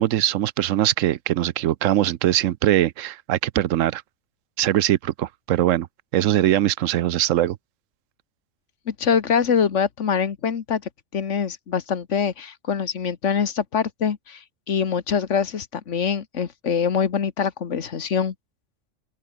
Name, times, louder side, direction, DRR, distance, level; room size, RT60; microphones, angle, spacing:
voice 1, 0.0-4.0 4.6-5.9 6.1-7.6, right 13 dB, 85° right, 1.0 m, -21 dB
voice 2, 8.9-10.8 11.1-18.3, left 7 dB, 70° left, 1.6 m, -24 dB
open air
omnidirectional pair, 1.3 m